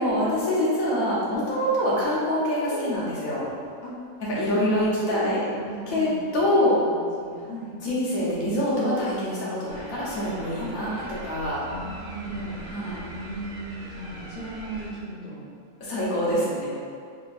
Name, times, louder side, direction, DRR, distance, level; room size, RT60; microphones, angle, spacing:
voice 1, 0.0-3.4 4.4-5.4 5.9-6.8 7.8-11.6 12.7-13.0 15.8-16.7, left 1 dB, 65° left, -7 dB, 1.4 m, -25 dB
sound 1, 2.6-3.6 4.9-5.7 8.8-9.8, left 1 dB, 20° right, 0.7 m, -37 dB
voice 2, 4.5-6.1 6.5-7.7 10.6-10.7 11.6-12.9 13.1-15.4 16.2-16.6, right 2 dB, 40° left, -8 dB, 0.9 m, -37 dB
sound 2, 9.7-14.9, right 1 dB, 75° right, 1.2 m, -41 dB
3.7 x 3.4 x 2.5 m, 2.3 s
omnidirectional pair, 1.6 m